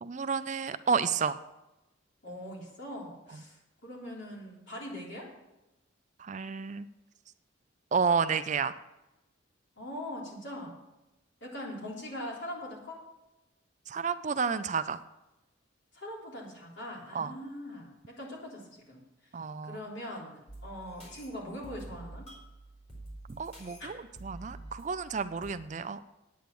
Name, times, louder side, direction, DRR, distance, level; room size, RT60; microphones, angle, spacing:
voice 1, 0.0-1.4 6.2-6.9 7.9-8.8 13.9-15.0 17.1-17.3 19.3-19.8 23.3-26.0, right 5 dB, 35° right, 12 dB, 0.4 m, -31 dB
voice 2, 2.2-5.3 9.8-10.8 11.4-13.0 15.9-19.0 19.6-22.3 23.8-23.9, left 1 dB, 60° left, -3 dB, 3.6 m, -41 dB
sound 1, 20.5-25.5, right 2 dB, 30° left, 3.7 m, -48 dB
9.2 x 9.1 x 6.9 m, 0.97 s
head